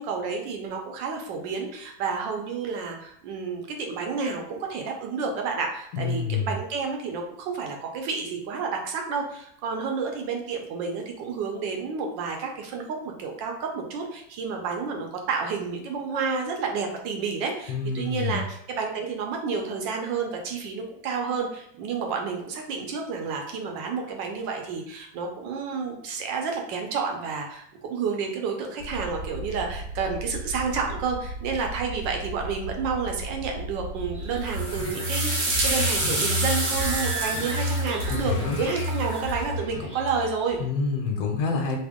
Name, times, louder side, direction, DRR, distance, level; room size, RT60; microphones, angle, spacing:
voice 1, 0.0-40.6, right 5 dB, 75° right, 2 dB, 1.2 m, -30 dB
voice 2, 5.9-6.5 17.7-18.4 38.1-38.6 40.6-41.8, left 4 dB, 80° left, 1 dB, 1.4 m, -27 dB
sound 1, 28.8-34.9, right 1 dB, 60° left, 0.9 m, -36 dB
sound 2, 34.0-40.6, equal, 40° left, 1.4 m, -30 dB
sound 3, 34.5-39.3, right 2 dB, 55° right, 0.7 m, -29 dB
3.5 x 2.0 x 3.5 m, 0.69 s
omnidirectional pair, 2.2 m